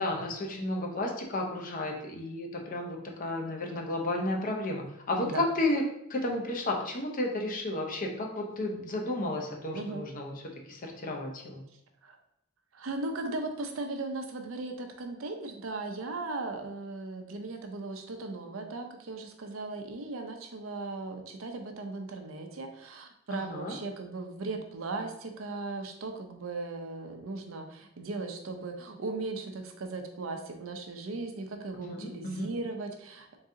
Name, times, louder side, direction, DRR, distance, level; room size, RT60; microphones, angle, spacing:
voice 1, 0.0-5.8 6.1-10.3 10.7-11.6 23.3-23.8 31.8-32.5, left 1 dB, 45° left, 1 dB, 0.7 m, -32 dB
voice 2, 12.7-33.4, right 3 dB, 90° right, 5 dB, 0.6 m, -37 dB
3.9 x 2.7 x 3.6 m, 0.77 s
head